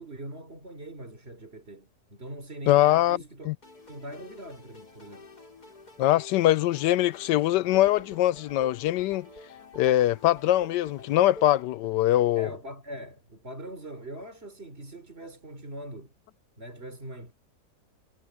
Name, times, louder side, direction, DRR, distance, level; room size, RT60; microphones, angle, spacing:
voice 1, 0.0-3.5 3.9-5.3 12.4-16.1 16.6-17.3, right 1 dB, 35° right, 4.4 m, -42 dB
voice 2, 2.7-3.2 3.5-3.6 6.0-9.3 9.8-12.5, left 14 dB, 80° left, 1.2 m, -22 dB
sound 1, 3.6-11.6, left 3 dB, 60° left, 5.9 m, -49 dB
omnidirectional pair, 1.9 m